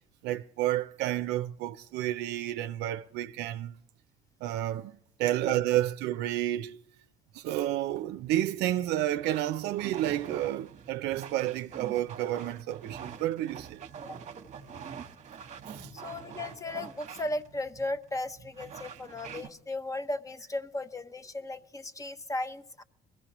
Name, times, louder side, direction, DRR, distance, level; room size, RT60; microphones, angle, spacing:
voice 1, 0.2-3.8 4.4-6.9 7.3-13.8 15.7-15.9, right 13 dB, 85° right, 0.4 m, -30 dB
sound 1, 7.9-19.5, right 7 dB, 45° right, 1.0 m, -46 dB
voice 2, 14.6-15.0 15.7-22.8, left 2 dB, 20° left, 0.7 m, -36 dB
22.5 x 14.5 x 3.0 m
cardioid pair, 110°, 17 cm